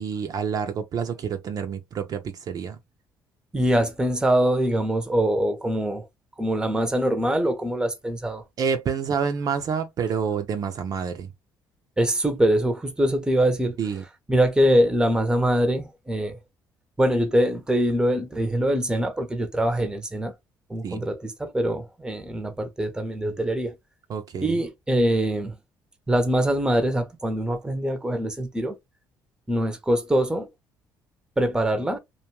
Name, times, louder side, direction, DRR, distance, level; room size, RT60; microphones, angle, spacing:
voice 1, 0.0-2.8 8.6-11.3 13.8-14.0 20.8-21.1 24.1-24.6, right 6 dB, 55° right, 0.5 m, -28 dB
voice 2, 3.5-6.1 6.4-8.4 12.0-13.8 14.3-16.4 17.0-20.3 20.7-23.8 24.4-25.6 26.1-28.8 29.5-30.5 31.4-32.0, right 1 dB, 10° right, 0.7 m, -23 dB
2.5 x 2.3 x 2.9 m
supercardioid pair, 80°, 8 cm